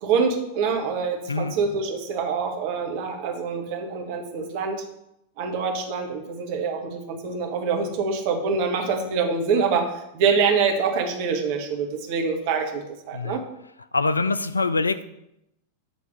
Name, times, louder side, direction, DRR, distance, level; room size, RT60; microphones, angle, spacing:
voice 1, 0.0-4.8 5.4-13.4, right 5 dB, 45° right, 3 dB, 1.3 m, -25 dB
voice 2, 13.9-15.0, left 3 dB, 80° left, 14 dB, 0.4 m, -24 dB
8.1 x 3.5 x 6.5 m, 0.83 s
figure-of-eight pair, 90°, 0 cm